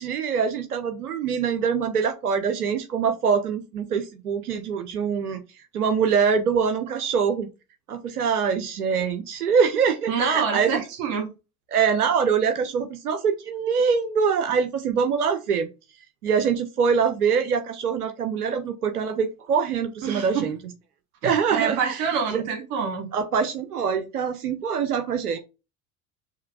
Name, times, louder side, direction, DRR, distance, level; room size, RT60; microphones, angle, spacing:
voice 1, 0.0-5.4 5.7-7.5 7.9-10.8 11.7-15.7 16.2-20.6 21.2-22.4 23.1-25.4, right 6 dB, 90° right, 0.6 m, -24 dB
voice 2, 10.1-11.3 20.0-20.5 21.2-23.1, right 6 dB, 65° right, 1.4 m, -26 dB
6.5 x 2.9 x 2.3 m
figure-of-eight pair, 70°, 44 cm